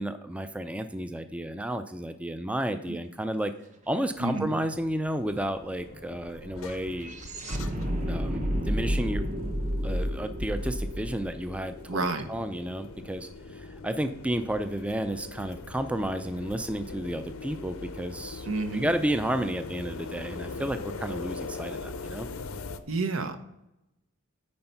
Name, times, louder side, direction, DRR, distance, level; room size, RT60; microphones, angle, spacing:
voice 1, 0.0-3.5 3.9-7.1 8.1-9.2 9.8-12.0 12.3-18.5 18.7-22.3, right 1 dB, 5° right, 9 dB, 0.3 m, -32 dB
sound 1, 4.1-4.2 4.4-12.7, equal, 35° right, 0.8 m, -32 dB
voice 2, 4.2-4.5 11.9-12.2 18.5-18.9 22.9-23.4, right 3 dB, 80° right, 8 dB, 0.9 m, -29 dB
sound 2, 5.2-22.8, left 3 dB, 90° left, 0.6 m, -42 dB
9.6 x 4.4 x 5.7 m, 0.88 s
head